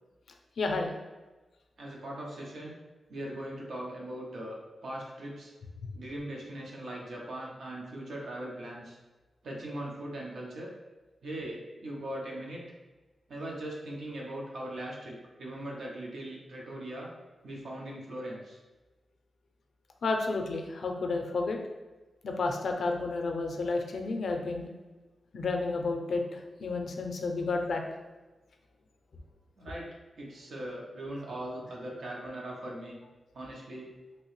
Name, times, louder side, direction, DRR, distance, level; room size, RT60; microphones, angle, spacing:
voice 1, 0.6-0.9 20.0-21.6 22.2-24.7 25.3-27.8, left 3 dB, 70° left, 3 dB, 0.4 m, -31 dB
voice 2, 1.8-2.8 3.1-5.5 5.9-9.0 9.4-10.7 11.2-12.6 13.3-17.1 17.4-18.6 29.6-29.9 30.2-33.0 33.3-33.9, right 1 dB, 75° right, -3 dB, 0.7 m, -40 dB
3.0 x 2.8 x 3.1 m, 1.2 s
wide cardioid pair, 150°, 0 cm